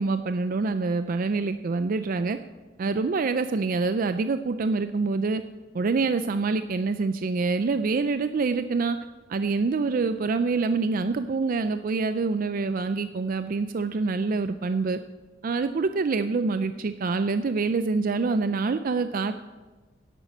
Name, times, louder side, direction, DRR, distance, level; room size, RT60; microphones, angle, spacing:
voice 1, 0.0-2.4 2.8-5.4 5.7-9.0 9.3-15.0 15.4-19.3, right 4 dB, 45° right, 10 dB, 0.4 m, -26 dB
10.5 x 8.2 x 7.2 m, 1.3 s
head